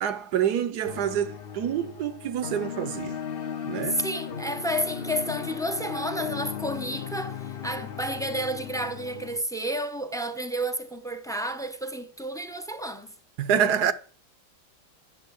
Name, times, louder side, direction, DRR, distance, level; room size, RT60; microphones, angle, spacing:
voice 1, 0.0-3.2 3.7-4.0 13.4-13.9, right 9 dB, 60° right, 1.2 m, -27 dB
sound 1, 0.8-9.4, left 8 dB, 55° left, 0.6 m, -36 dB
voice 2, 3.8-13.1, right 1 dB, 5° left, 0.5 m, -31 dB
11.0 x 7.7 x 8.3 m
omnidirectional pair, 2.2 m